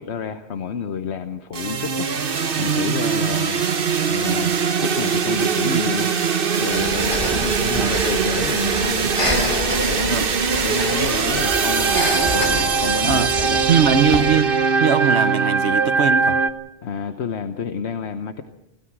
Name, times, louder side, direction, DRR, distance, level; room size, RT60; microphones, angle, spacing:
voice 1, 0.0-3.7 4.1-6.1 6.6-10.3 10.6-11.9 12.3-13.6 16.8-18.4, left 6 dB, 80° left, 1.2 m, -30 dB
sound 1, 1.5-16.5, right 5 dB, 55° right, 1.2 m, -21 dB
Breathing, 6.7-14.4, left 1 dB, 30° left, 2.5 m, -29 dB
voice 2, 13.7-14.5 14.8-16.4, right 6 dB, 85° right, 1.3 m, -20 dB
25.5 x 17.0 x 6.1 m
omnidirectional pair, 1.1 m